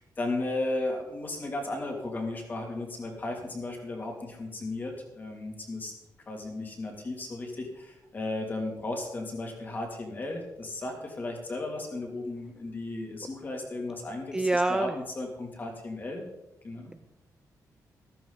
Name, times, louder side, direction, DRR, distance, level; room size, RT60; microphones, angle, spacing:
voice 1, 0.0-5.9 6.3-16.2 16.6-16.9, left 2 dB, 30° left, 1 dB, 2.8 m, -35 dB
voice 2, 14.3-14.9, right 2 dB, 10° right, 9 dB, 0.4 m, -25 dB
14.0 x 14.0 x 4.1 m, 0.91 s
wide cardioid pair, 180°, 7 cm